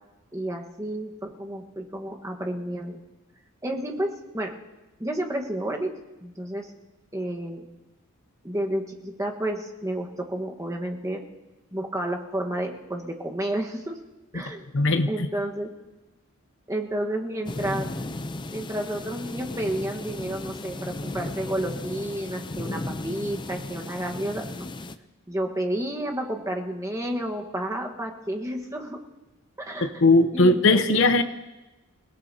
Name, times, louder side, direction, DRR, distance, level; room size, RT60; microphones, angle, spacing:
voice 1, 0.3-3.0 3.6-4.5 5.0-5.9 6.2-6.7 7.1-7.7 8.4-11.2 11.7-14.0 14.3-14.7 15.1-15.7 16.7-17.9 18.5-24.7 25.3-29.0 29.6-30.0 30.3-31.0, right 1 dB, 15° right, 1 dB, 1.3 m, -31 dB
voice 2, 14.7-15.3 29.8-31.2, left 2 dB, 60° left, 11 dB, 0.8 m, -19 dB
sound 1, 17.5-25.0, left 2 dB, 20° left, 0.5 m, -35 dB
28.0 x 17.0 x 2.8 m, 1.0 s
head